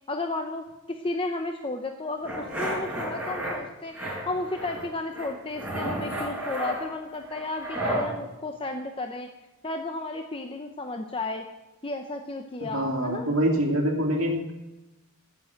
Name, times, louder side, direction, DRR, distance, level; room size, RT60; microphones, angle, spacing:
voice 1, 0.1-9.3 9.6-11.4 11.8-13.3, left 2 dB, 25° left, 4 dB, 0.8 m, -33 dB
sound 1, 2.2-3.5 3.9-4.8 5.1-8.1, right 1 dB, 5° right, 4.9 m, -32 dB
voice 2, 12.7-14.5, equal, 70° right, 1 dB, 2.3 m, -25 dB
14.5 x 7.7 x 7.9 m, 1.0 s
head